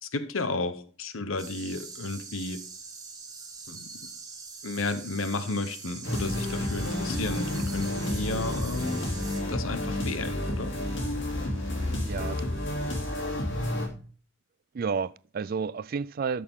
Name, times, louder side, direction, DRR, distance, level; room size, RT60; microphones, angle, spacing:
voice 1, 0.0-2.6 3.7-3.9 4.6-9.1 9.5-10.8, left 3 dB, 85° left, 1.0 m, -33 dB
sound 1, 1.4-9.4, right 5 dB, 20° right, 1.6 m, -43 dB
sound 2, 6.0-13.9, left 1 dB, 60° left, 2.9 m, -30 dB
voice 2, 12.0-12.4 14.7-16.4, right 5 dB, 45° right, 0.3 m, -31 dB
12.5 x 6.6 x 3.7 m
head